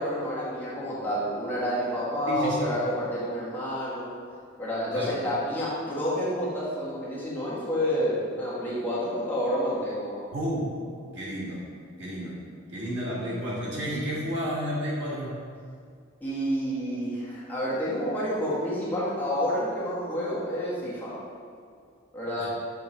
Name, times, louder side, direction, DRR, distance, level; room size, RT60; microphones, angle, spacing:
voice 1, 0.0-4.1 4.6-10.2 16.2-21.1 22.1-22.5, equal, 10° left, -9 dB, 1.6 m, -29 dB
voice 2, 2.3-2.7 4.9-5.1 10.3-10.7 11.1-11.6 12.0-12.4 12.7-15.4 22.4-22.5, equal, 60° right, -6 dB, 1.7 m, -31 dB
6.8 x 4.4 x 4.3 m, 2.2 s
head